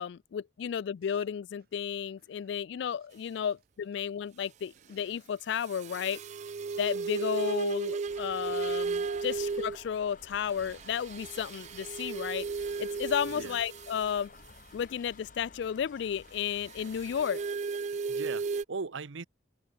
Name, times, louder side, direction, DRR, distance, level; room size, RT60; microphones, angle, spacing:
voice 1, 0.0-6.2 6.8-12.5 12.8-14.3 14.7-17.4, left 8 dB, 60° left, 0.3 m, -33 dB
sound 1, 1.0-3.1 3.4-4.0 4.3-5.4 6.7-8.9 9.1-9.2 9.5-9.6 9.8-11.6 11.9-15.0 16.1-18.2, right 4 dB, 55° right, 7.1 m, -66 dB
sound 2, 5.6-9.8 10.5-14.2 16.7-18.6, right 4 dB, 35° right, 0.3 m, -35 dB
sound 3, 8.1-17.3, left 4 dB, 45° left, 1.4 m, -54 dB
voice 2, 8.9-9.2 13.4-13.5 18.1-19.2, right 4 dB, 80° right, 0.8 m, -39 dB
head